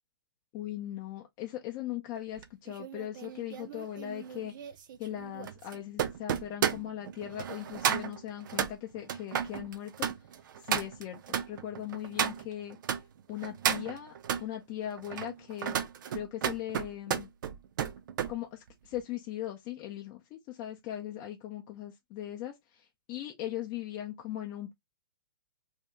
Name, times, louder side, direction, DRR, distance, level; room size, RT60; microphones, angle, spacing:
voice 1, 0.5-4.5 5.0-10.1 10.6-12.8 13.3-14.1 14.4-15.8 16.1-17.3 18.3-22.8 23.1-24.7, left 12 dB, 30° left, 0.6 m, -39 dB
sound 1, 2.4-13.0 13.4-14.5 15.0-18.3 18.7-19.0, right 9 dB, 55° right, 0.6 m, -33 dB
2.8 x 2.7 x 3.3 m
hypercardioid pair, 145°, 12 cm